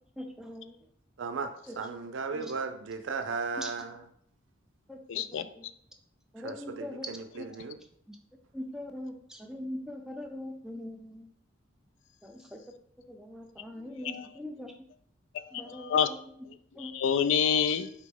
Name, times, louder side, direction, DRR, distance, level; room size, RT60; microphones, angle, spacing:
voice 1, 0.2-0.7 2.3-2.5 3.6-3.7 4.9-5.7 6.3-7.1 8.5-11.3 12.2-12.6 13.1-14.7 15.5-16.0 16.8-16.9, left 1 dB, 5° right, 3 dB, 0.4 m, -41 dB
voice 2, 1.2-4.1 6.4-7.8, right 4 dB, 65° right, 7 dB, 0.4 m, -36 dB
voice 3, 5.1-5.5 14.0-14.3 15.3-16.1 16.8-17.9, left 7 dB, 70° left, 12 dB, 0.3 m, -27 dB
4.1 x 3.0 x 3.5 m, 0.66 s
head